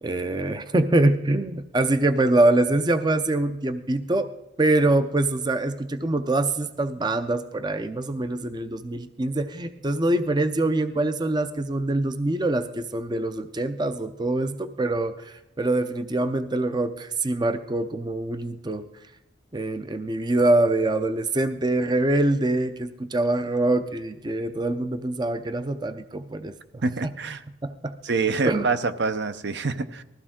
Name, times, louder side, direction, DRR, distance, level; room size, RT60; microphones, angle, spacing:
voice 1, 0.0-4.3 4.6-18.9 19.5-27.1 27.6-27.9 28.4-28.7, right 2 dB, 20° right, 10 dB, 0.5 m, -24 dB
voice 2, 26.8-27.4 28.0-30.0, right 4 dB, 60° right, 11 dB, 0.7 m, -26 dB
20.0 x 14.5 x 3.7 m, 0.95 s
head